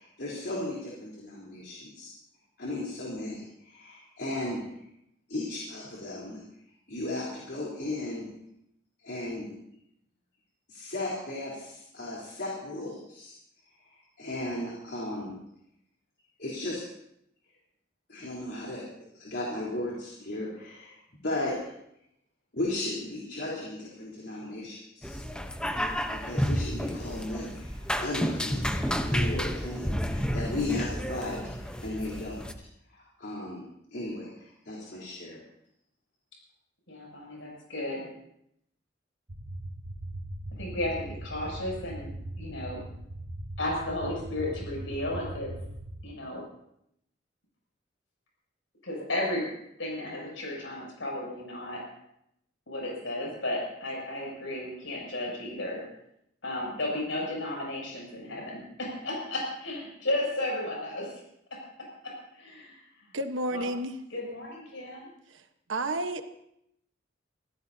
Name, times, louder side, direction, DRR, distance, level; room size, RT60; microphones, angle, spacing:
voice 1, 0.0-2.1 2.6-4.8 5.3-6.4 6.9-8.3 9.0-9.5 10.7-13.3 13.9-15.4 16.4-16.8 18.1-18.9 19.1-21.0 21.2-21.7 22.5-25.2 26.1-28.7 29.1-32.5 32.9-33.6 33.9-35.4, left 2 dB, 60° left, -4 dB, 3.8 m, -36 dB
sound 1, 25.0-32.5, equal, 5° left, 0.9 m, -31 dB
voice 2, 36.9-38.1 40.6-42.1 42.4-42.8 43.6-45.5 46.0-46.4 48.8-49.5 49.8-51.8 52.7-55.8 56.4-61.1 61.5-61.6 62.0-62.8 63.5-63.7 64.1-65.1, left 1 dB, 80° left, -3 dB, 7.3 m, -34 dB
sound 2, 39.3-46.0, right 1 dB, 40° right, 1.1 m, -40 dB
voice 3, 63.1-64.0 65.7-66.2, right 1 dB, 75° right, 7 dB, 1.2 m, -30 dB
25.5 x 15.5 x 2.8 m, 0.76 s
head